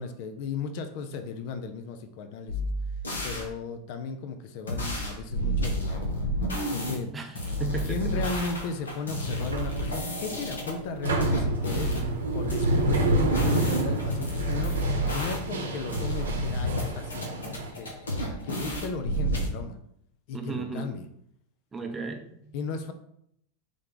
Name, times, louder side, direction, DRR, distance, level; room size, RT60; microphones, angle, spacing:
voice 1, 0.0-2.6 3.2-6.2 6.7-7.1 7.8-17.9 18.2-19.8 20.3-21.1 22.5-22.9, left 4 dB, 55° left, 7 dB, 0.5 m, -36 dB
sound 1, 2.5-3.4 4.7-6.9 7.3-10.7 11.2-12.0 12.5-15.6 15.9-16.8 17.1-19.5, equal, 85° left, 0.9 m, -30 dB
voice 2, 7.1-8.1 20.3-20.9 21.7-22.4, right 4 dB, 15° right, 4 dB, 0.7 m, -35 dB
sound 2, 9.3-17.7, right 1 dB, 80° right, 0.7 m, -29 dB
3.4 x 3.2 x 3.9 m, 0.70 s
hypercardioid pair, 90°, 0 cm